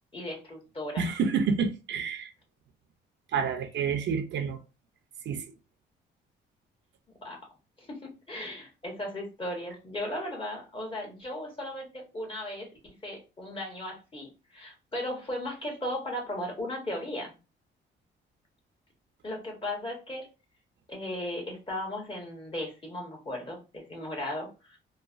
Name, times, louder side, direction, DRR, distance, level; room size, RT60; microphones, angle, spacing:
voice 1, 0.1-1.0 7.2-7.4 7.8-12.7 13.0-17.3 19.2-20.3 20.9-24.8, left 1 dB, 25° left, 1.3 m, -36 dB
voice 2, 1.0-2.3 3.3-4.6 5.2-5.4, right 6 dB, 65° right, 0.6 m, -28 dB
3.1 x 2.1 x 2.5 m
cardioid pair, 90°, 20 cm